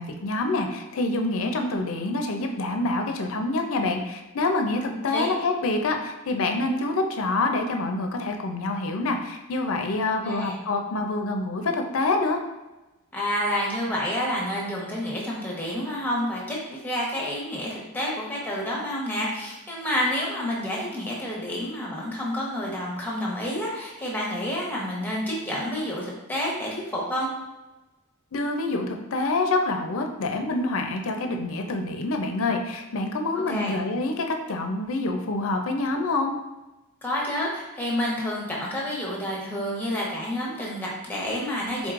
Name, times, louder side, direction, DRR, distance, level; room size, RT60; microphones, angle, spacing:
voice 1, 0.0-12.4 28.3-36.3, left 2 dB, 70° left, 4 dB, 0.5 m, -26 dB
voice 2, 4.9-5.3 10.2-10.6 13.1-27.3 33.3-33.8 37.0-41.9, equal, 10° left, -4 dB, 0.9 m, -29 dB
4.6 x 3.9 x 2.5 m, 1.0 s
head